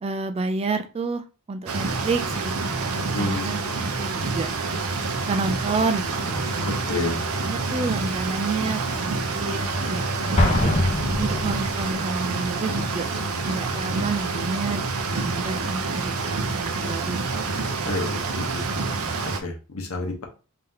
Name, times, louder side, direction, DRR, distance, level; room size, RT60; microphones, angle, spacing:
voice 1, 0.0-3.6 4.0-4.5 5.2-7.0 7.5-10.7 11.2-13.1 13.4-14.8 15.1-17.3 17.7-18.0, right 4 dB, 30° right, 9 dB, 0.3 m, -30 dB
sound 1, 1.7-19.4, right 3 dB, 85° right, 0.7 m, -27 dB
voice 2, 3.1-3.7 6.6-7.2 17.9-18.6 19.2-20.2, left 2 dB, 75° left, 2 dB, 1.0 m, -29 dB
Keyboard (musical), 5.7-12.9, equal, 60° right, 1.0 m, -38 dB
Explosion, 10.4-12.1, left 1 dB, 30° left, 0.8 m, -23 dB
3.5 x 2.8 x 3.6 m, 0.33 s
head